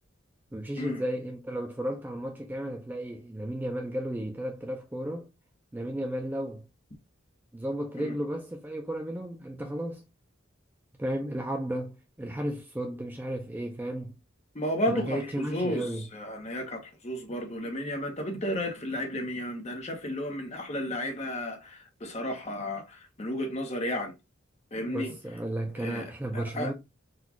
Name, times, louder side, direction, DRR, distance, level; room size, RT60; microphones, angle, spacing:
voice 1, 0.5-5.3 5.7-6.6 7.5-10.0 11.0-14.2 14.9-16.0 24.9-26.7, right 1 dB, 10° right, 0.3 m, -34 dB
voice 2, 14.5-24.1 24.7-25.1 25.8-26.7, left 1 dB, 35° left, 0.8 m, -33 dB
4.0 x 2.3 x 2.8 m
head